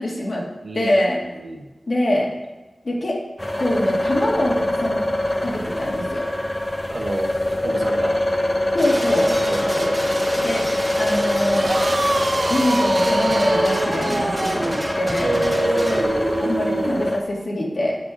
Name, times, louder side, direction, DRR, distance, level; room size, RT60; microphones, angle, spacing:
voice 1, 0.0-0.5 0.7-1.2 1.9-2.3 2.8-3.2 3.6-5.1 5.4-6.3 8.7-9.3 10.4-10.6 11.0-11.7 12.5-15.3 16.4-18.0, left 1 dB, 70° left, -3 dB, 2.0 m, -23 dB
voice 2, 1.2-1.7 6.9-8.2 9.3-10.0 15.2-16.1, right 2 dB, 80° right, 2 dB, 1.2 m, -28 dB
sound 1, 3.4-17.2, left 1 dB, 20° left, 0.7 m, -23 dB
sound 2, 8.8-16.0, right 1 dB, 15° right, 1.7 m, -29 dB
sound 3, 11.6-17.1, right 2 dB, 65° right, 0.7 m, -26 dB
7.5 x 6.7 x 5.0 m, 1.1 s
wide cardioid pair, 55°, 0 cm